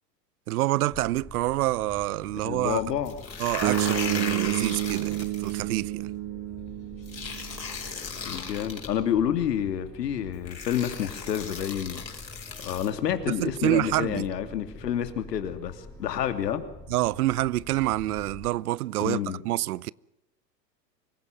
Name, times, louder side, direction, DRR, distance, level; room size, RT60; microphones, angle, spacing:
voice 1, 0.5-2.8 3.4-6.1 13.4-14.3 16.9-19.2 19.4-19.9, right 16 dB, 60° right, 0.8 m, -27 dB
sound 1, 0.9-18.5, left 2 dB, 5° left, 4.1 m, -46 dB
voice 2, 2.4-3.2 8.3-12.0 12.6-16.6 19.0-19.4, left 9 dB, 75° left, 2.9 m, -29 dB
sound 2, 3.1-5.6 7.1-8.9 9.9-10.0 10.5-12.9, left 5 dB, 90° left, 5.6 m, -36 dB
sound 3, 3.6-7.8, right 15 dB, 30° right, 1.3 m, -29 dB
25.5 x 16.5 x 7.7 m
hypercardioid pair, 100°, 50 cm